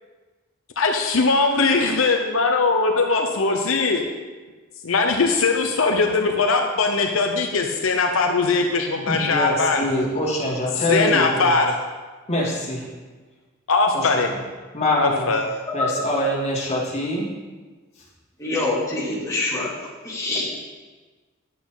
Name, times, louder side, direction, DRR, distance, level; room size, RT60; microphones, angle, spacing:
voice 1, 0.8-4.0 4.8-9.9 10.9-11.7 13.7-14.3 15.0-15.4, left 3 dB, 80° left, 3 dB, 0.8 m, -20 dB
voice 2, 9.1-11.6 12.3-12.8 13.9-14.2 14.7-15.3 15.7-17.3, left 1 dB, 30° left, -5 dB, 2.7 m, -24 dB
voice 3, 18.4-19.7 20.0-20.4, left 2 dB, 15° left, -7 dB, 2.9 m, -25 dB
10.0 x 8.3 x 4.0 m, 1.3 s
head